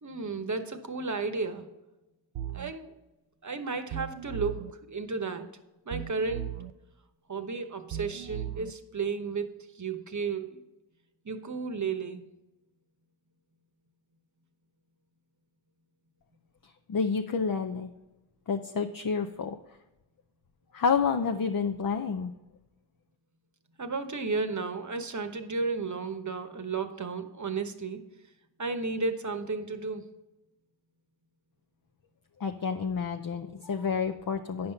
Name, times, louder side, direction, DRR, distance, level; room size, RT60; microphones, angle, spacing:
voice 1, 0.0-1.6 2.5-2.9 3.4-4.6 4.9-5.5 5.9-6.5 7.3-10.6 11.2-12.3 23.8-28.1 28.6-30.0, right 4 dB, 35° right, 8 dB, 1.0 m, -33 dB
sound 1, 2.3-2.7 3.9-4.7 5.9-6.7 7.9-8.7, right 11 dB, 90° right, 0.6 m, -37 dB
voice 2, 16.6-17.9 18.5-19.6 20.7-22.3 32.4-34.7, left 5 dB, 45° left, 6 dB, 0.6 m, -29 dB
9.4 x 5.5 x 5.5 m, 1.0 s
cardioid pair, 50°, 49 cm